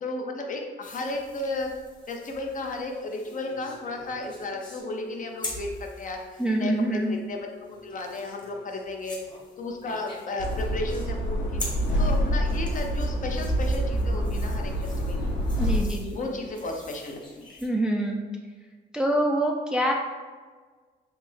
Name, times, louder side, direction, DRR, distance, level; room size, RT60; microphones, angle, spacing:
voice 1, 0.0-1.7 2.1-6.2 6.6-7.4 7.8-9.2 9.6-11.6 12.0-15.4 16.1-17.5, left 2 dB, 40° left, 2 dB, 0.5 m, -34 dB
sound 1, 0.8-17.7, left 2 dB, 20° left, 0.9 m, -45 dB
sound 2, 3.2-16.4, left 4 dB, 60° left, 1.0 m, -50 dB
voice 2, 6.4-7.1 15.6-16.2 17.6-18.2 18.9-19.9, right 1 dB, 5° right, 0 dB, 0.3 m, -25 dB
sound 3, 10.4-15.8, equal, 75° left, 0.8 m, -26 dB
3.3 x 2.6 x 3.3 m, 1.5 s
cardioid pair, 90°, 20 cm